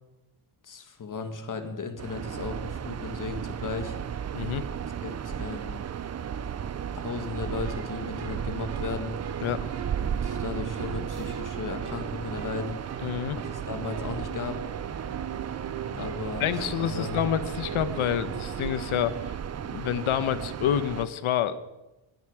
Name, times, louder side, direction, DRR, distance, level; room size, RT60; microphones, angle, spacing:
voice 1, 0.6-4.0 5.0-5.8 6.9-9.2 10.0-12.8 13.5-14.6 16.0-17.3, left 4 dB, 40° left, 7 dB, 1.9 m, -36 dB
sound 1, 2.0-21.0, right 8 dB, 35° right, 0.5 m, -34 dB
voice 2, 4.3-4.6 9.4-9.7 13.0-13.4 15.9-16.0 16.4-19.4 19.6-21.6, left 10 dB, 80° left, 13 dB, 1.1 m, -28 dB
sound 2, 7.3-18.8, right 6 dB, 55° right, 1.9 m, -41 dB
22.0 x 10.5 x 4.9 m, 1.0 s
cardioid pair, 135°, 48 cm